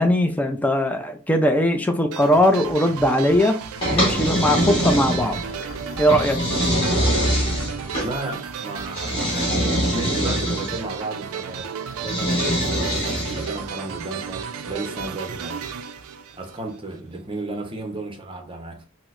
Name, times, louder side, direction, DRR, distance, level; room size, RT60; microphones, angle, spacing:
voice 1, 0.0-3.6 3.9-5.4 6.0-6.4, equal, 5° left, 0.3 m, -20 dB
sound 1, 2.1-16.9, right 7 dB, 70° right, 0.4 m, -34 dB
sound 2, 3.7-8.4, left 1 dB, 60° left, 0.8 m, -39 dB
sound 3, 3.8-5.5 6.1-8.1 8.9-10.8 12.0-13.6, equal, 25° left, 1.3 m, -23 dB
voice 2, 7.9-11.7 12.0-15.7 16.3-18.8, right 2 dB, 25° right, 0.7 m, -34 dB
4.4 x 2.0 x 2.5 m
head